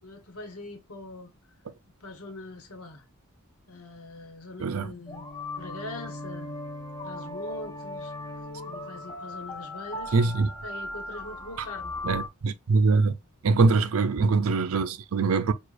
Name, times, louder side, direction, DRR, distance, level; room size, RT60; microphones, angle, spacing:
voice 1, 0.0-1.3 2.0-3.0 3.7-5.2 5.6-6.6 7.0-8.1 8.6-10.2 10.6-11.9 12.7-12.9 13.5-13.9, left 2 dB, 80° left, 1.2 m, -42 dB
voice 2, 4.6-4.9 10.1-10.5 12.0-13.1 13.4-15.5, right 4 dB, 70° right, 0.5 m, -23 dB
sound 1, 5.1-12.3, left 2 dB, 20° left, 1.1 m, -38 dB
6.2 x 2.4 x 2.5 m
head